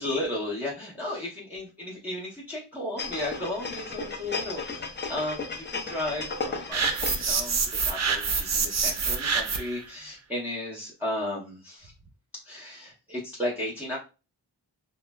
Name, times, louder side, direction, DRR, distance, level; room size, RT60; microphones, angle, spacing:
voice 1, 0.0-11.9 12.3-14.0, left 1 dB, 5° right, -6 dB, 0.7 m, -34 dB
sound 1, 3.0-7.4 7.8-7.9, left 4 dB, 25° left, 0.4 m, -34 dB
sound 2, 6.7-9.8, right 5 dB, 40° right, 0.5 m, -26 dB
3.1 x 2.0 x 2.3 m, 0.31 s
wide cardioid pair, 95°, 44 cm